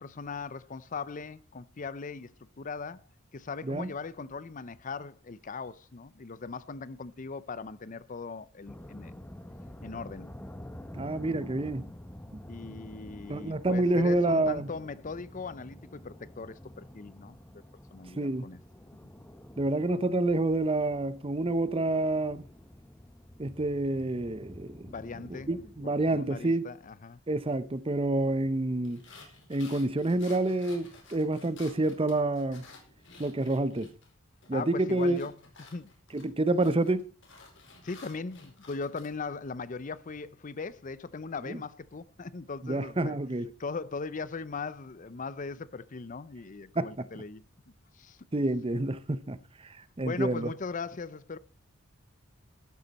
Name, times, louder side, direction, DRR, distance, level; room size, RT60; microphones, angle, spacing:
voice 1, 0.0-2.3 2.6-3.0 3.3-9.1 9.8-10.3 12.5-17.6 17.9-18.6 19.0-19.1 24.9-25.7 26.1-27.2 34.5-35.4 35.7-35.9 37.8-43.2 43.6-47.4 48.0-48.2 50.0-51.4, left 4 dB, 40° left, 0.6 m, -39 dB
sound 1, 8.7-26.3, left 1 dB, 10° left, 0.9 m, -48 dB
voice 2, 11.0-11.9 13.3-14.7 18.2-18.5 19.6-22.4 23.4-24.9 25.5-26.7 27.3-29.0 29.5-32.6 33.2-33.9 34.5-35.2 36.1-37.1 41.5-41.6 42.6-43.5 46.8-47.1 48.3-49.4 50.0-50.5, right 2 dB, 25° right, 0.7 m, -28 dB
sound 2, 28.8-34.1 34.4-39.1, left 4 dB, 60° left, 4.5 m, -53 dB
13.0 x 11.5 x 4.1 m
head